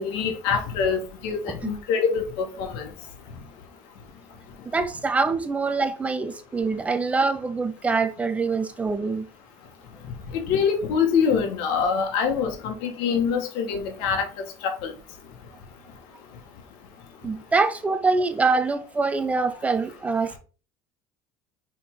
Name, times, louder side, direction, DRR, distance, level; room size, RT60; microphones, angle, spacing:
voice 1, 0.0-2.8 10.3-14.3 14.8-14.9, left 6 dB, 70° left, 1.9 m, -24 dB
voice 2, 4.7-9.3 17.2-20.4, right 4 dB, 15° right, 0.5 m, -24 dB
5.7 x 4.9 x 3.9 m
cardioid pair, 145°, 9 cm